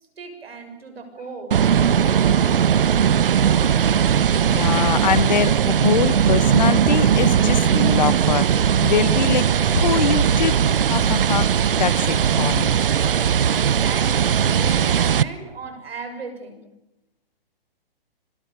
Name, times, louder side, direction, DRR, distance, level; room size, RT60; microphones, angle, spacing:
voice 1, 0.2-1.6 13.4-16.6, right 4 dB, 85° right, 6 dB, 7.1 m, -36 dB
sound 1, 1.5-15.2, right 8 dB, 65° right, 0.9 m, -18 dB
voice 2, 4.1-10.6 10.9-11.5 11.8-12.7, left 8 dB, 45° left, 16 dB, 1.2 m, -24 dB
25.5 x 20.0 x 6.9 m, 0.94 s
hypercardioid pair, 175°, 30 cm